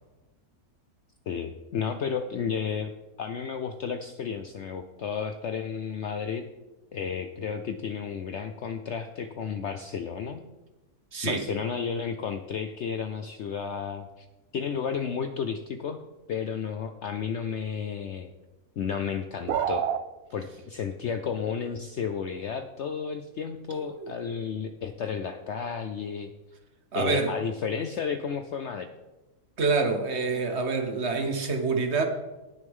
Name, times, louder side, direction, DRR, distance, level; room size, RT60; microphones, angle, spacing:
voice 1, 1.3-2.9 3.2-6.4 6.9-10.4 11.2-14.3 14.5-16.0 16.3-18.3 18.8-19.8 20.3-26.3 26.9-28.9, left 6 dB, 65° left, 8 dB, 0.7 m, -32 dB
voice 2, 11.1-11.5 23.7-24.1 26.9-27.3 29.6-32.0, right 4 dB, 50° right, 5 dB, 1.2 m, -27 dB
sound 1, 19.5-20.0, right 9 dB, 70° right, 1.0 m, -26 dB
18.0 x 6.5 x 3.6 m, 1.1 s
omnidirectional pair, 1.7 m